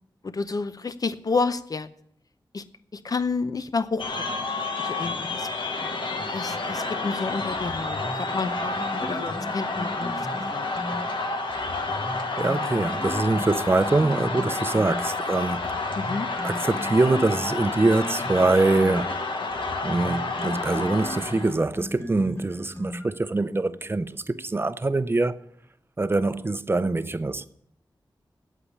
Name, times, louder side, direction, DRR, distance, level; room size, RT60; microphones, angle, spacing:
voice 1, 0.3-1.9 2.5-2.6 2.9-4.2 4.8-5.5 6.3-10.7 16.0-16.3, left 4 dB, 50° left, 0.7 m, -30 dB
sound 1, 4.0-21.6, left 3 dB, 80° left, 1.4 m, -30 dB
sound 2, 7.5-11.0 11.5-15.0 15.5-23.3, left 1 dB, 30° left, 1.8 m, -37 dB
voice 2, 12.4-15.6 16.4-19.1 19.8-25.4 26.0-27.5, right 2 dB, 30° right, 0.6 m, -24 dB
8.6 x 8.4 x 8.4 m
wide cardioid pair, 110°, 8 cm